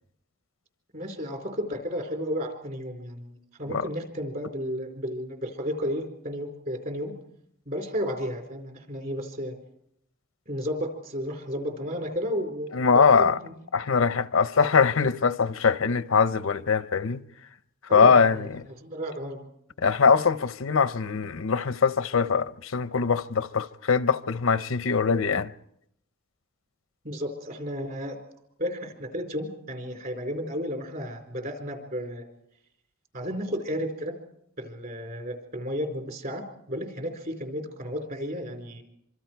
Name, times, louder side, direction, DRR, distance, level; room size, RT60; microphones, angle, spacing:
voice 1, 0.9-7.1 7.7-9.5 10.5-13.5 13.8-14.0 17.9-18.5 18.8-19.4 27.0-28.2 28.6-32.2 33.1-34.1 34.6-38.8, equal, 45° right, 4.3 m, -33 dB
voice 2, 12.7-13.4 13.7-17.2 17.9-18.6 19.8-25.5, left 5 dB, 80° left, 0.7 m, -22 dB
25.5 x 25.0 x 4.6 m
head